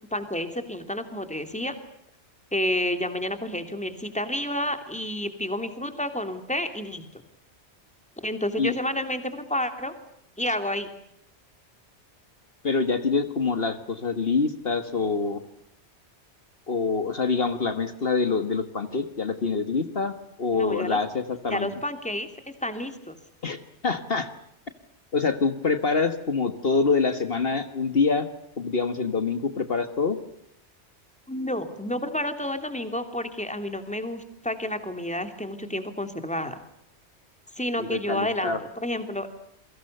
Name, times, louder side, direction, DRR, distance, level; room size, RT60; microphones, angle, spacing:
voice 1, 0.1-1.8 2.5-7.0 8.2-9.9 10.4-10.9 20.6-21.0 21.5-23.2 31.3-36.6 37.6-39.3, left 1 dB, 5° left, 8 dB, 2.9 m, -30 dB
voice 2, 12.6-15.4 16.7-21.7 23.4-23.6 23.8-24.3 25.1-28.3 28.6-30.2 37.8-38.6, left 4 dB, 55° left, 9 dB, 1.8 m, -25 dB
29.0 x 23.5 x 6.8 m, 0.75 s
omnidirectional pair, 1.2 m